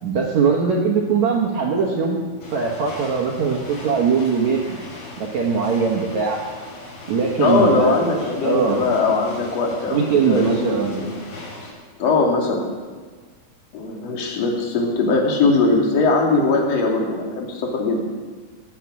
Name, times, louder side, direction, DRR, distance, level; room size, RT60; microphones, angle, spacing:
voice 1, 0.0-2.2 2.5-4.6 5.2-6.4 7.1-7.9 8.4-8.8 9.9-11.0, right 5 dB, 80° right, -1 dB, 1.6 m, -21 dB
sound 1, 2.4-11.7, left 2 dB, 90° left, 8.5 m, -38 dB
voice 2, 7.4-11.1 12.0-12.7 13.7-18.0, left 3 dB, 45° left, 0 dB, 2.6 m, -20 dB
19.0 x 10.0 x 6.1 m, 1.5 s
omnidirectional pair, 5.4 m